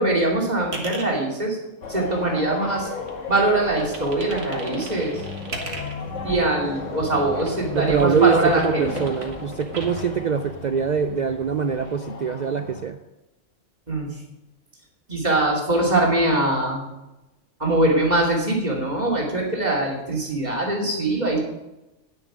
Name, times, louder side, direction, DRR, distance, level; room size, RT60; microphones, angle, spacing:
voice 1, 0.0-1.6 1.9-2.9 3.3-5.2 5.5-5.8 6.2-8.9 13.9-14.1 15.1-16.8 17.6-21.4, right 2 dB, 35° right, -2 dB, 2.7 m, -22 dB
sound 1, 0.6-1.1 1.7-2.8 3.1-6.1 6.9-10.1, right 2 dB, 55° right, 1.8 m, -38 dB
sound 2, 1.8-12.9, left 4 dB, 75° left, 1.6 m, -34 dB
voice 2, 7.7-13.0, right 7 dB, 75° right, 9 dB, 0.4 m, -23 dB
10.0 x 9.9 x 5.0 m, 0.99 s
omnidirectional pair, 1.3 m